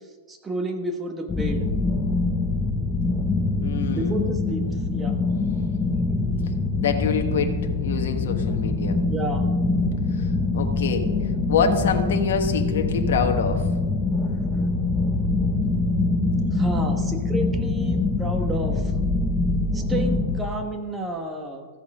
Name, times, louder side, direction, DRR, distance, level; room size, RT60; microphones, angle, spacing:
voice 1, 0.3-1.7 3.9-4.6 4.9-5.2 9.1-9.5 16.5-18.9 19.7-21.7, right 2 dB, 10° right, 4 dB, 1.1 m, -31 dB
sound 1, 1.3-20.4, left 3 dB, 10° left, 0.9 m, -24 dB
voice 2, 3.6-4.2 6.8-7.5 7.8-9.0 10.1-11.1 11.5-13.7, left 6 dB, 70° left, 4 dB, 1.3 m, -26 dB
14.0 x 7.7 x 5.4 m, 1.5 s
hypercardioid pair, 155°, 0 cm